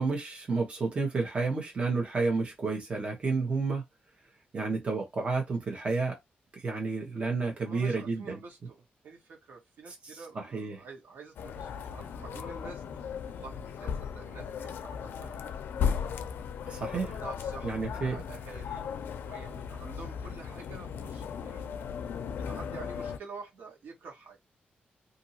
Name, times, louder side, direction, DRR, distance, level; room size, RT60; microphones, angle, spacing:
voice 1, 0.0-3.8 4.5-6.2 6.5-8.4 10.0-10.8 16.7-17.1 17.6-18.2, right 4 dB, 35° right, 1.1 m, -31 dB
voice 2, 7.6-8.8 9.0-15.5 16.9-18.8 19.2-21.7 22.2-24.4, right 4 dB, 80° right, 1.1 m, -48 dB
sound 1, 11.4-23.2, left 7 dB, 85° left, 0.4 m, -36 dB
2.7 x 2.6 x 2.8 m
wide cardioid pair, 155°, 3 cm